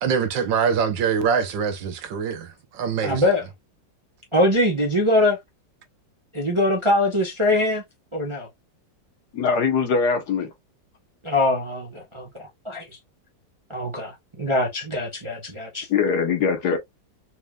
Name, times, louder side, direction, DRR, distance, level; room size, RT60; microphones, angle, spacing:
voice 1, 0.0-3.2, right 6 dB, 75° right, 1.5 m, -24 dB
voice 2, 3.0-3.4 4.3-5.4 6.3-7.8 8.1-8.5 11.2-12.9 13.7-15.9, left 1 dB, 25° right, 0.6 m, -22 dB
voice 3, 9.3-10.5 15.9-16.8, left 5 dB, 65° left, 1.4 m, -22 dB
4.4 x 3.2 x 2.3 m
omnidirectional pair, 2.0 m